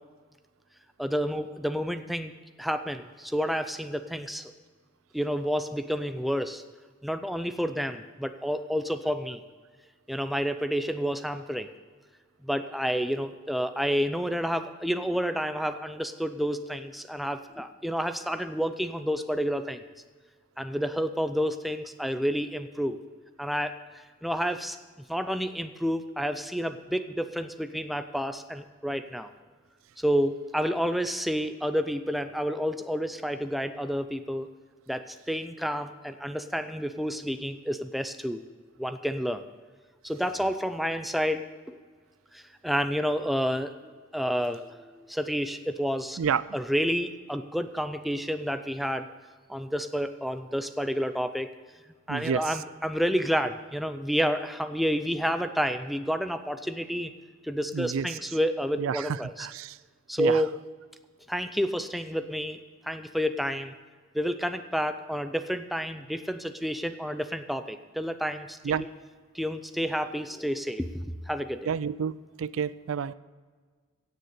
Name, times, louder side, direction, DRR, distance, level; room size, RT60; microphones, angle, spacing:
voice 1, 1.0-2.3 2.6-4.5 5.1-6.6 7.0-9.4 10.1-11.7 12.4-19.8 20.6-23.0 23.4-24.8 25.1-29.3 30.0-34.5 34.9-38.4 38.8-39.4 40.0-41.8 42.3-46.2 46.5-49.1 49.5-51.5 52.1-57.1 57.4-59.5 60.1-60.5 61.3-62.6 62.8-63.7 64.1-68.6 69.3-70.9 71.3-71.7, equal, ahead, 9 dB, 0.5 m, -30 dB
voice 2, 52.1-52.6 57.7-58.2 58.8-59.8 60.2-60.4 68.6-68.9 71.7-73.1, right 7 dB, 75° right, 18 dB, 0.4 m, -29 dB
16.5 x 6.7 x 6.5 m, 1.5 s
head